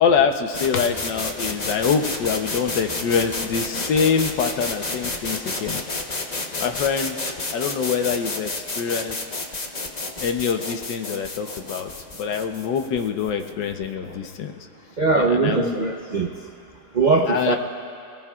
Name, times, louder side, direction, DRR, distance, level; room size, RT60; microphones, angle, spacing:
voice 1, 0.0-5.8 6.6-8.5 8.8-9.2 10.2-11.9 12.2-14.5 15.2-15.8 17.3-17.6, left 6 dB, 85° left, 6 dB, 1.5 m, -24 dB
sound 1, 0.5-14.3, left 3 dB, 30° left, 0.8 m, -31 dB
voice 2, 15.0-16.3 16.9-17.5, right 3 dB, 45° right, 0 dB, 0.5 m, -20 dB
28.5 x 18.5 x 2.4 m, 2.6 s
omnidirectional pair, 1.9 m